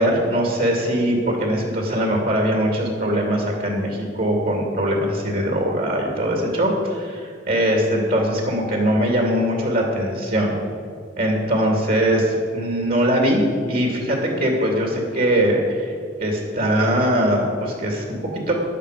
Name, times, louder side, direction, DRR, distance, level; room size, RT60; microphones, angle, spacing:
voice 1, 0.0-10.5 11.2-15.9 16.2-18.5, equal, 55° right, 0 dB, 2.6 m, -21 dB
15.5 x 11.5 x 5.0 m, 2.3 s
head